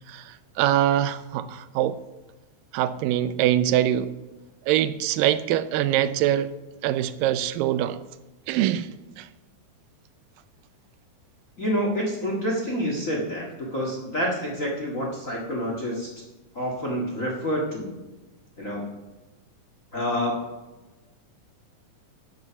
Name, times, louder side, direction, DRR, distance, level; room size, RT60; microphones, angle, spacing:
voice 1, 0.1-2.0 2.7-4.1 4.7-6.5 6.8-8.0 8.5-9.3, right 12 dB, 90° right, 2.3 m, -24 dB
voice 2, 11.6-16.1 16.5-17.9 18.6-18.9 19.9-20.3, equal, 35° left, 1.5 m, -28 dB
12.0 x 6.2 x 6.8 m
omnidirectional pair, 3.9 m